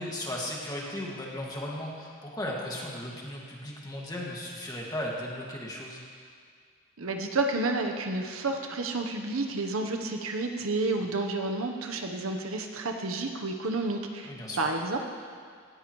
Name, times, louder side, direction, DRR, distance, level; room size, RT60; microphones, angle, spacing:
voice 1, 0.0-6.0 14.2-14.6, left 1 dB, 20° left, -3 dB, 2.1 m, -36 dB
voice 2, 7.0-14.3 14.6-15.0, right 2 dB, 75° right, 3 dB, 1.1 m, -30 dB
18.0 x 14.0 x 3.2 m, 2.1 s
head